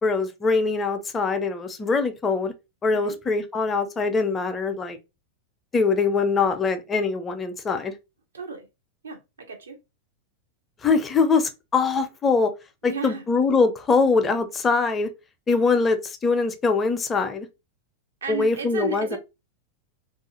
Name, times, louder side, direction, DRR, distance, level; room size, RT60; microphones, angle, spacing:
voice 1, 0.0-2.5 2.8-5.0 5.7-7.9 10.8-12.5 12.8-15.1 15.5-17.5 18.3-19.2, left 4 dB, 20° left, 0.4 m, -23 dB
voice 2, 8.3-8.7 9.0-9.8 12.8-13.2 18.2-19.2, right 5 dB, 70° right, 0.6 m, -33 dB
2.4 x 2.3 x 2.7 m
figure-of-eight pair, 90°, 0 cm